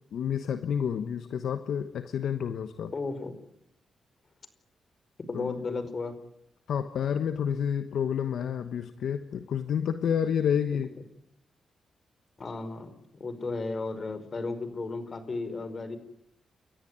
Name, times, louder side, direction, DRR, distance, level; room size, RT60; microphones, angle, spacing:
voice 1, 0.1-2.9 5.3-5.8 6.7-10.9, left 8 dB, 75° left, 9 dB, 1.2 m, -29 dB
voice 2, 2.9-3.3 5.3-6.1 12.4-12.9 13.2-16.0, left 3 dB, 45° left, 12 dB, 5.0 m, -34 dB
30.0 x 14.5 x 9.5 m, 0.77 s
cardioid pair, 65°, 0 cm